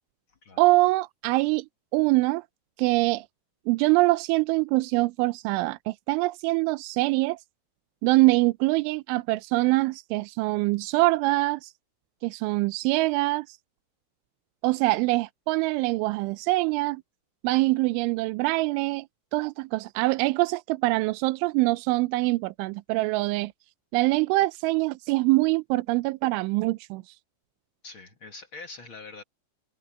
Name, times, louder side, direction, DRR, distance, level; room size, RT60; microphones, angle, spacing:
voice 1, 0.6-1.7 1.9-2.4 2.8-3.3 3.7-7.4 8.0-11.7 12.2-13.6 14.6-17.0 17.4-19.1 19.3-23.5 23.9-27.1, right 21 dB, 85° right, 2.8 m, -24 dB
voice 2, 27.8-29.2, left 3 dB, 60° left, 1.3 m, -43 dB
omnidirectional pair, 5.9 m